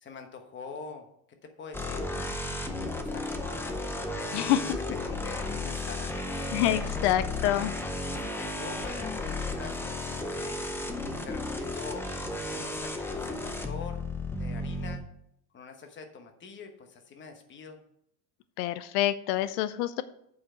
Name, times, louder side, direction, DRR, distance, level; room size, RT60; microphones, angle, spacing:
voice 1, 0.0-1.1 1.4-2.1 2.9-3.8 4.1-4.7 5.0-6.6 8.0-10.6 11.2-12.1 12.5-14.1 14.4-15.1 15.5-17.8, left 5 dB, 25° left, 5 dB, 1.1 m, -44 dB
sound 1, 1.7-15.0, left 2 dB, 5° left, 0.5 m, -34 dB
voice 2, 6.5-7.7 18.6-20.0, left 13 dB, 90° left, 14 dB, 0.6 m, -27 dB
8.4 x 4.8 x 6.2 m, 0.73 s
cardioid pair, 150°, 46 cm